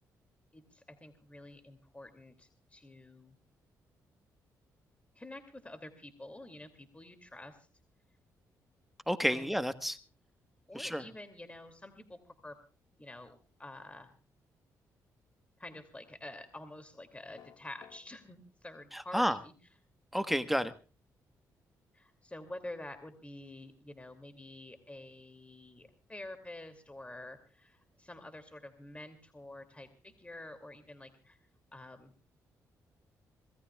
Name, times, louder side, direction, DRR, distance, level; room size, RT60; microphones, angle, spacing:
voice 1, 0.5-3.4 5.1-7.7 9.3-9.5 10.7-12.6 13.0-14.1 15.6-19.5 21.9-31.4 31.7-32.1, left 1 dB, 15° left, 8 dB, 2.6 m, -48 dB
voice 2, 9.1-10.0 10.7-11.0 18.9-19.4 20.1-20.7, equal, ahead, 9 dB, 1.4 m, -30 dB
sound 1, 17.4-18.0, left 9 dB, 65° left, 1.8 m, -54 dB
26.5 x 18.5 x 2.4 m, 0.36 s
supercardioid pair, 50°, 8 cm